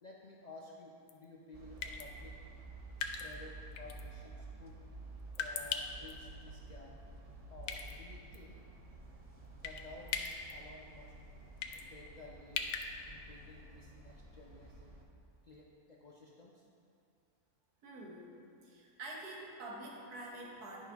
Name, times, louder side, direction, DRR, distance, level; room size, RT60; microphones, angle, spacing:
voice 1, 0.0-2.4 3.2-4.8 5.3-7.0 7.5-8.6 9.6-11.2 11.9-12.7 13.1-15.0 15.4-16.7, left 2 dB, 65° left, -3 dB, 0.4 m, -54 dB
sound 1, 1.1-1.2 1.8-2.1 3.0-3.3 3.8-4.0 5.3-6.1 7.6-8.0 8.3-8.4 9.6-9.8 10.1-10.5 11.6-11.8 12.6-12.9, left 7 dB, 85° left, 1.1 m, -38 dB
sound 2, 1.5-15.0, right 2 dB, 45° right, 0.4 m, -52 dB
voice 2, 17.8-18.3 18.6-20.9, right 1 dB, 85° right, -2 dB, 1.5 m, -47 dB
10.5 x 5.4 x 3.4 m, 2.4 s
omnidirectional pair, 1.6 m